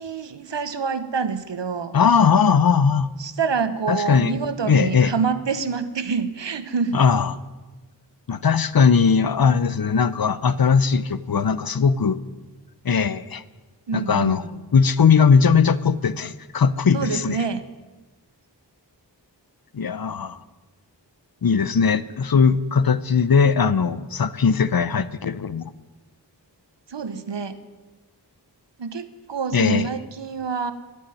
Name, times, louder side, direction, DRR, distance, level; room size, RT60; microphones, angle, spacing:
voice 1, 0.0-2.0 3.2-7.0 13.9-14.6 16.9-17.6 26.9-27.6 28.8-30.7, right 5 dB, 75° right, 11 dB, 1.1 m, -27 dB
voice 2, 1.9-3.1 3.9-4.3 4.6-5.1 6.9-7.4 8.3-12.2 12.8-13.4 13.9-14.4 14.7-17.4 19.7-20.4 21.4-25.6 29.5-29.9, left 6 dB, 55° left, 16 dB, 0.8 m, -19 dB
11.5 x 9.5 x 9.8 m, 1.2 s
wide cardioid pair, 50°, 43 cm